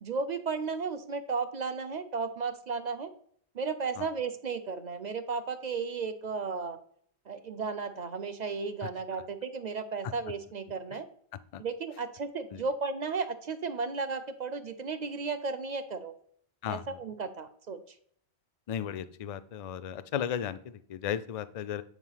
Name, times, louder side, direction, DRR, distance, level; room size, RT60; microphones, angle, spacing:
voice 1, 0.0-3.1 3.5-6.8 7.3-11.0 11.6-16.1 16.7-17.8, right 4 dB, 45° right, 11 dB, 0.7 m, -34 dB
voice 2, 16.6-17.0 18.7-21.8, left 9 dB, 55° left, 13 dB, 0.4 m, -35 dB
7.5 x 4.8 x 5.6 m, 0.62 s
omnidirectional pair, 1.1 m